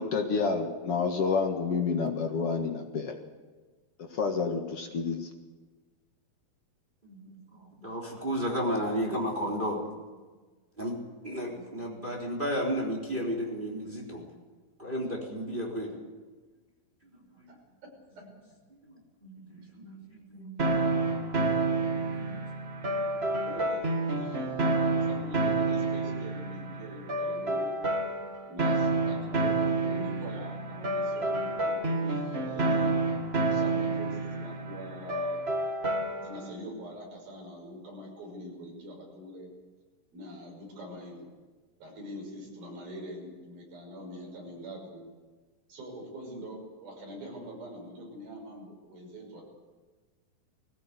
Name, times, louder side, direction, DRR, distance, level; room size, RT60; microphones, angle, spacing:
voice 1, 0.0-3.1 4.1-5.3, left 5 dB, 50° left, 4 dB, 2.0 m, -29 dB
voice 2, 7.0-9.8 10.8-11.0 11.2-14.3 14.8-15.9 17.4-17.5 18.8-19.0 19.2-20.9 21.8-22.4, equal, 15° right, -2 dB, 3.5 m, -33 dB
voice 3, 17.8-18.3 19.8-20.0 23.5-24.7 25.0-27.7 28.5-32.9 33.5-35.4 36.2-39.5 40.1-41.3 41.8-45.0 45.7-49.4, equal, 75° right, 0 dB, 7.9 m, -44 dB
sound 1, 20.6-36.5, right 2 dB, 45° right, 0.8 m, -29 dB
20.5 x 17.0 x 8.3 m, 1.3 s
omnidirectional pair, 4.3 m